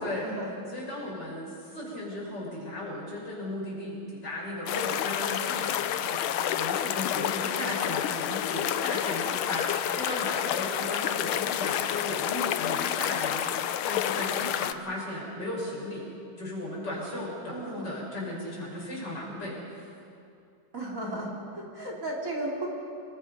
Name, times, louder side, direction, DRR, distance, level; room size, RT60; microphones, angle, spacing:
voice 1, 0.0-0.5 7.4-7.8 17.5-17.9 20.7-22.7, right 1 dB, 40° right, -2 dB, 3.5 m, -35 dB
voice 2, 0.7-6.2 6.6-13.4 13.8-16.1 16.4-19.9, left 1 dB, 55° left, -4 dB, 6.7 m, -36 dB
sound 1, 4.7-14.7, left 11 dB, 90° left, 1.6 m, -29 dB
27.0 x 22.0 x 5.5 m, 2.6 s
omnidirectional pair, 2.3 m